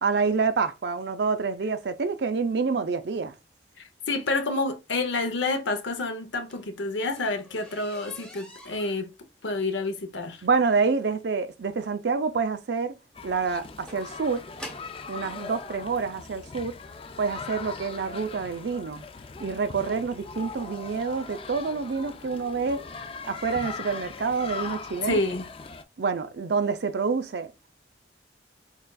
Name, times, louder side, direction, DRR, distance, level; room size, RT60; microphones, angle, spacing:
voice 1, 0.0-3.3 10.4-12.9 13.2-14.4 15.1-16.7 17.2-19.0 19.4-22.8 23.3-25.2 26.0-27.5, right 4 dB, 65° right, 0.5 m, -27 dB
voice 2, 3.8-9.1 9.4-10.4 25.0-25.5, left 2 dB, 80° left, 0.8 m, -29 dB
sound 1, 6.2-15.1 16.0-16.1 16.7-16.9 17.2-17.3 17.6-17.7, left 1 dB, 5° left, 0.8 m, -47 dB
sound 2, 13.1-25.8, left 4 dB, 30° left, 0.3 m, -40 dB
6.6 x 2.4 x 2.3 m
head